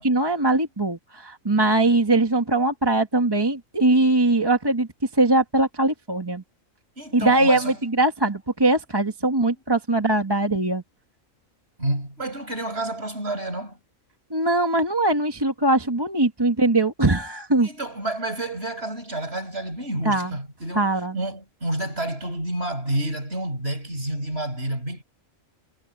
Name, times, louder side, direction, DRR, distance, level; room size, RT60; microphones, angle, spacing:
voice 1, 0.0-4.9 5.1-6.4 7.1-10.8 14.3-17.7 20.0-20.3 20.7-21.2, right 2 dB, 20° right, 1.6 m, -21 dB
voice 2, 7.0-7.8 11.8-13.8 17.6-25.0, right 1 dB, 50° right, 7.6 m, -29 dB
omnidirectional pair, 1.4 m